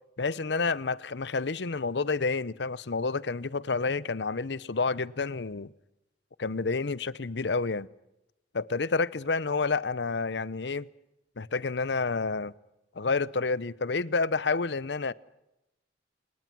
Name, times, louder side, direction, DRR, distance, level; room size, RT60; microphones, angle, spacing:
voice 1, 0.2-5.7 6.4-7.9 8.5-10.9 11.4-12.5 12.9-15.1, left 4 dB, 70° left, 0.8 m, -29 dB
28.5 x 20.0 x 6.2 m
head